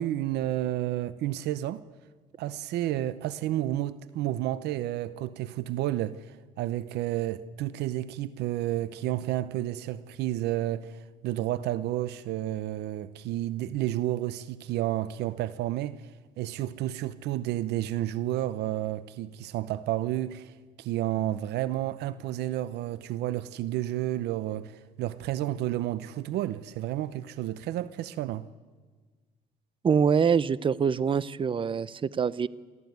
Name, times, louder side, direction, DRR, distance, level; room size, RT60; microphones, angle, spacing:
voice 1, 0.0-1.8 2.4-16.1 16.4-28.5, right 14 dB, 80° right, 0.8 m, -31 dB
voice 2, 29.8-32.5, right 6 dB, 30° right, 0.7 m, -24 dB
29.0 x 14.0 x 9.4 m
cardioid pair, 110°, 17 cm